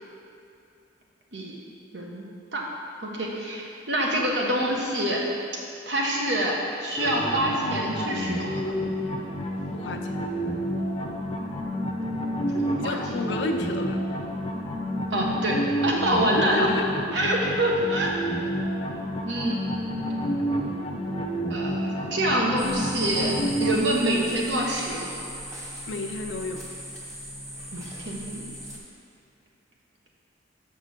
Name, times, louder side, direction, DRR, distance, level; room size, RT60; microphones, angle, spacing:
voice 1, 1.9-2.2 2.5-2.6 3.0-5.2 5.9-8.7 12.5-13.0 15.1-16.7 17.1-18.1 19.3-19.6 21.5-25.2 27.7-28.5, right 1 dB, 70° right, -2 dB, 1.3 m, -26 dB
sound 1, 7.0-23.7, equal, 30° left, 0.7 m, -29 dB
voice 2, 9.7-10.2 12.8-14.0 16.2-17.3 25.9-26.7, left 3 dB, 70° left, 4 dB, 0.5 m, -31 dB
sound 2, 22.6-28.8, equal, 15° right, 1.4 m, -38 dB
6.3 x 5.8 x 6.6 m, 2.6 s
head